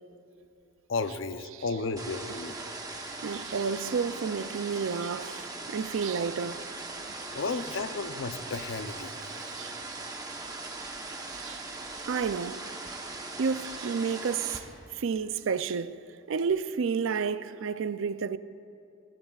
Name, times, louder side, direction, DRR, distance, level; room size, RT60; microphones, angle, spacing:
voice 1, 0.9-2.6 7.3-9.1, left 3 dB, 65° left, 0.6 m, -33 dB
sound 1, 2.0-14.6, right 3 dB, 15° right, 0.9 m, -40 dB
voice 2, 3.2-6.7 9.5-9.8 11.3-11.6 12.1-12.6 13.4-14.6 14.9-16.0 16.3-18.4, right 6 dB, 65° right, 0.4 m, -31 dB
23.5 x 14.5 x 2.4 m
head